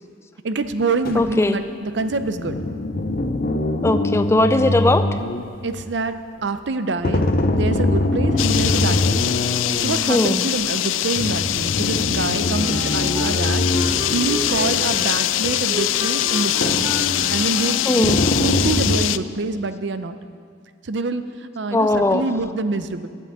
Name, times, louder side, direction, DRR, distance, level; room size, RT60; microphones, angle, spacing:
voice 1, 0.4-2.6 5.6-7.2 7.5-9.3 9.8-16.9 17.3-20.2 20.8-23.1, right 3 dB, 65° right, 10 dB, 0.6 m, -26 dB
sound 1, 1.0-1.3 2.0-5.9 7.0-10.1 11.1-15.1 15.4-15.5 16.6-17.5 18.0-19.0, left 2 dB, 50° left, 0.7 m, -23 dB
voice 2, 1.1-1.6 3.8-5.1 10.1-10.4 17.9-18.2 21.7-22.2, left 2 dB, 15° left, 10 dB, 0.4 m, -18 dB
sound 2, 8.4-19.2, left 14 dB, 85° left, 0.3 m, -23 dB
Wind instrument woodwind instrument, 12.5-18.5, equal, 20° right, 1.2 m, -33 dB
12.0 x 8.2 x 8.0 m, 2.1 s
head